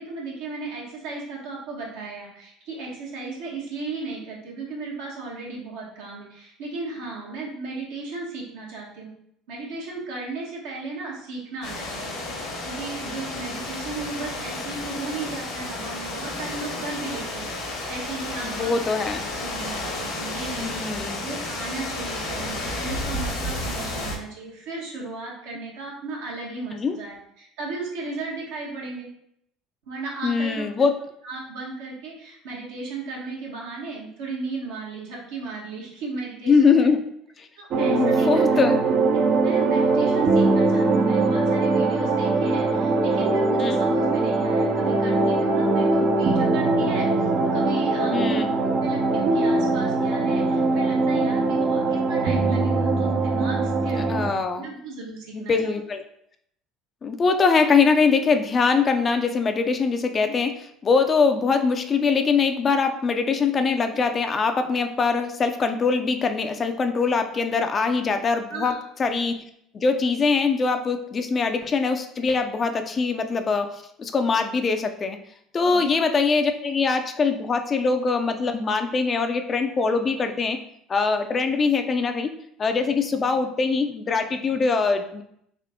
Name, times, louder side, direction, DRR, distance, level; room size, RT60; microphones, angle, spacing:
voice 1, 0.0-9.1 9.5-17.5 17.9-18.8 19.4-29.1 29.9-30.7 31.2-36.7 37.6-38.6 39.4-55.7 68.5-68.8 75.6-76.0, right 3 dB, 80° right, -3 dB, 1.3 m, -35 dB
sound 1, 11.6-24.2, left 2 dB, 70° left, 1.2 m, -32 dB
voice 2, 18.4-19.2 20.6-21.2 26.7-27.0 30.2-30.9 36.5-37.1 37.4-37.5 37.8-38.8 43.6-43.8 48.1-48.5 53.8-54.7 55.0-56.0 57.0-68.7 69.0-69.4 69.7-75.2 75.5-80.6 80.9-82.3 82.6-85.2, left 4 dB, 35° left, 7 dB, 0.5 m, -23 dB
sound 2, 37.7-54.3, right 3 dB, 55° right, 0.6 m, -21 dB
3.6 x 2.6 x 3.5 m, 0.72 s
hypercardioid pair, 75°, 0 cm